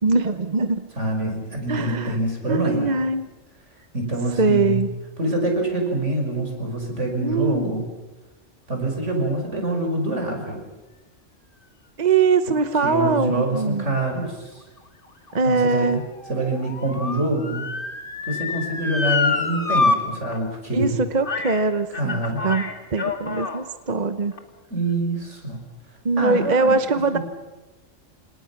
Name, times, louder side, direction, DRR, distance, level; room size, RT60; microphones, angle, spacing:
voice 1, 0.0-0.9 1.7-2.2 2.5-3.3 4.4-4.9 7.2-7.8 12.0-14.0 15.3-16.0 20.7-24.3 26.0-27.2, right 4 dB, 35° right, 10 dB, 1.0 m, -22 dB
voice 2, 1.0-3.0 3.9-4.8 5.2-7.8 8.7-10.6 12.8-14.4 15.4-16.0 16.3-17.7 18.3-21.0 21.9-22.5 24.7-25.6 26.2-26.8 27.1-27.2, right 1 dB, 65° right, 2 dB, 5.9 m, -25 dB
Motor vehicle (road) / Siren, 14.8-20.0 20.3-20.4 21.2-21.6 21.9-23.6 24.3-24.4, left 3 dB, 45° left, 2.2 m, -26 dB
29.5 x 27.0 x 5.9 m, 1.1 s
omnidirectional pair, 1.3 m